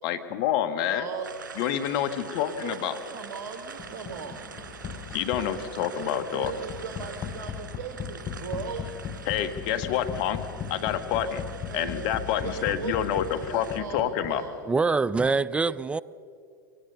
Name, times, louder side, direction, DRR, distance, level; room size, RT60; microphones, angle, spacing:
voice 1, 0.0-1.1 1.6-3.0 5.1-6.5 9.3-11.4 11.7-14.4, left 10 dB, 55° left, 1.5 m, -28 dB
voice 2, 0.9-1.3 2.6-4.5 5.3-8.9 11.2-11.4 11.7-14.5 15.3-15.8, right 6 dB, 60° right, 1.7 m, -39 dB
sound 1, 1.2-13.8, right 6 dB, 80° right, 2.4 m, -44 dB
sound 2, 3.8-14.7, left 8 dB, 30° left, 1.1 m, -38 dB
voice 3, 14.7-16.0, right 4 dB, 10° right, 0.4 m, -24 dB
23.0 x 18.0 x 6.9 m
hypercardioid pair, 95°, 10 cm